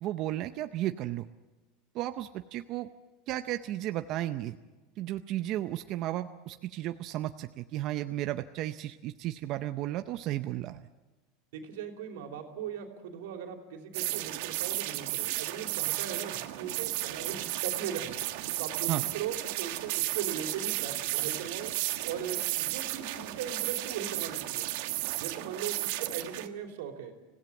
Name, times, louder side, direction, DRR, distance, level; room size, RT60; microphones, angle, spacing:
voice 1, 0.0-1.3 1.9-2.9 3.3-4.6 5.0-10.8 18.9-19.0, right 14 dB, 45° right, 9 dB, 0.6 m, -34 dB
voice 2, 11.5-18.2 18.6-21.7 22.0-24.7 25.2-27.2, right 8 dB, 85° right, 4 dB, 3.2 m, -39 dB
sound 1, 13.9-26.5, right 17 dB, 70° right, 1.4 m, -33 dB
25.5 x 16.5 x 7.2 m, 1.2 s
supercardioid pair, 155°, 0 cm